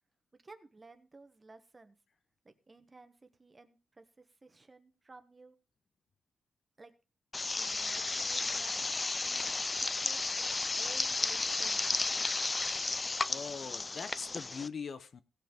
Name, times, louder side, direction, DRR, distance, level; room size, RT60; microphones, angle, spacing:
voice 1, 0.3-2.0 2.4-5.6 6.8-6.9 7.6-9.5 9.8-10.4 10.7-12.4, right 3 dB, 25° right, 9 dB, 1.3 m, -56 dB
sound 1, 7.3-14.7, left 3 dB, 25° left, 0.5 m, -33 dB
voice 2, 13.3-15.2, left 6 dB, 50° left, 12 dB, 0.9 m, -41 dB
17.0 x 5.8 x 5.2 m, 0.33 s
wide cardioid pair, 120°, 0 cm